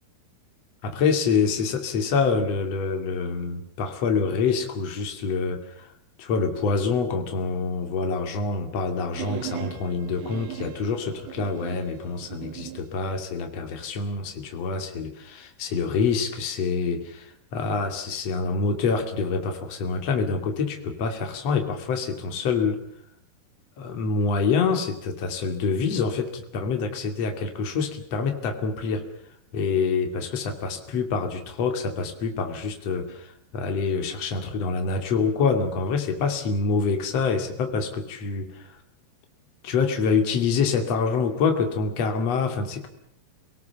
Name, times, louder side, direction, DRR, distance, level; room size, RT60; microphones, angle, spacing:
voice 1, 0.8-5.9 6.2-22.8 23.8-29.1 29.5-38.5 39.6-42.9, left 5 dB, 45° left, 5 dB, 3.4 m, -26 dB
sound 1, 9.1-12.9, right 13 dB, 85° right, 1.5 m, -38 dB
28.5 x 18.0 x 7.2 m, 0.73 s
omnidirectional pair, 4.5 m